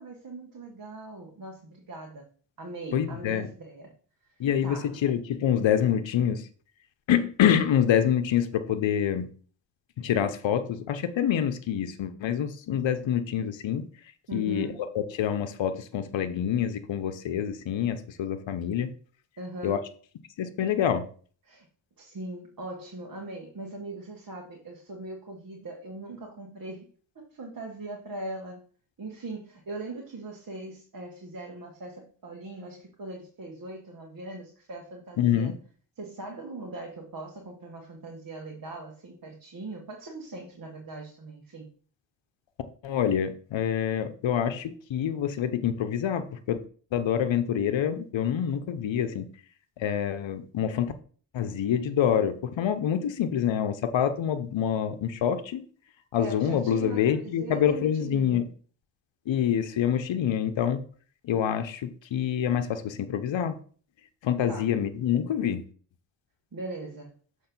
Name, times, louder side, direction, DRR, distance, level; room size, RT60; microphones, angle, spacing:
voice 1, 0.0-2.3 2.6-3.9 4.2-5.0 14.3-14.9 19.4-19.9 21.5-21.7 22.0-26.9 27.1-28.6 29.0-35.5 36.0-41.7 56.1-58.4 64.5-64.7 66.5-67.1, right 2 dB, 45° right, 0 dB, 1.4 m, -40 dB
voice 2, 2.9-3.5 4.4-6.5 7.1-9.3 10.0-13.9 14.3-18.9 19.6-19.8 20.4-21.1 35.2-35.5 42.8-46.6 46.9-49.3 49.8-50.9 51.3-55.6 56.1-58.5 59.3-60.8 61.2-63.6 64.2-65.6, left 9 dB, 75° left, 9 dB, 0.8 m, -26 dB
6.5 x 3.2 x 5.9 m, 0.43 s
cardioid pair, 70°, 46 cm